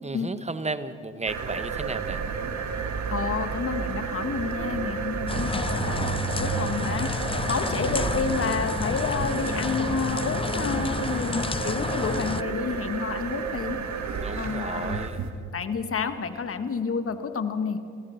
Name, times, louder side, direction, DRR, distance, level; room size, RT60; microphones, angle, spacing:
voice 1, 0.0-2.2 7.6-8.1 14.2-15.2, right 3 dB, 20° right, 12 dB, 1.5 m, -34 dB
sound 1, 1.3-15.3, right 5 dB, 60° right, 2.2 m, -31 dB
voice 2, 3.1-7.1 7.5-13.8 14.3-15.0 15.5-17.8, left 5 dB, 45° left, 9 dB, 1.7 m, -30 dB
sound 2, 5.3-12.4, left 5 dB, 15° left, 0.4 m, -30 dB
30.0 x 15.5 x 5.9 m, 2.5 s
supercardioid pair, 60°, 32 cm